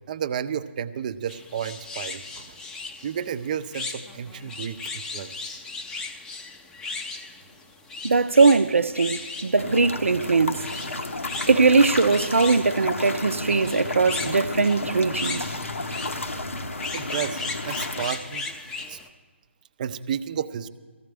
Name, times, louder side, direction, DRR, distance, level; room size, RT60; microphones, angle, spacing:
voice 1, 0.1-2.6 3.0-5.6 16.9-18.5 18.9-19.0 19.8-20.7, right 8 dB, 40° right, 0.5 m, -32 dB
sound 1, 1.3-19.1, left 3 dB, 10° left, 0.6 m, -37 dB
voice 2, 8.0-10.7 11.5-15.5, right 4 dB, 80° right, 0.6 m, -20 dB
sound 2, 9.6-18.1, left 2 dB, 90° left, 1.0 m, -32 dB
19.0 x 14.5 x 3.4 m
figure-of-eight pair, 145°, 7 cm